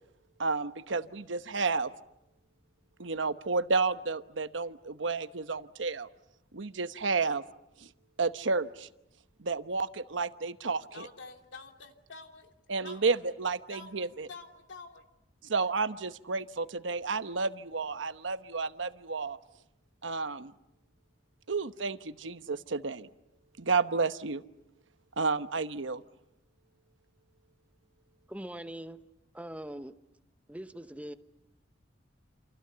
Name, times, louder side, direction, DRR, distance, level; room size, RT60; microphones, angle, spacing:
voice 1, 0.4-1.9 3.0-6.1 6.5-7.4 7.8-7.9 8.2-8.9 9.4-11.1 12.7-14.3 15.4-19.4 20.0-20.5 21.5-23.1 23.6-24.4 25.2-26.0, right 4 dB, 90° right, 1.0 m, -31 dB
voice 2, 10.9-12.5 12.8-13.2 13.7-15.0, left 4 dB, 70° left, 2.9 m, -48 dB
voice 3, 28.3-29.0 29.3-30.0 30.5-31.1, right 1 dB, 10° right, 0.9 m, -41 dB
29.0 x 28.0 x 6.9 m
head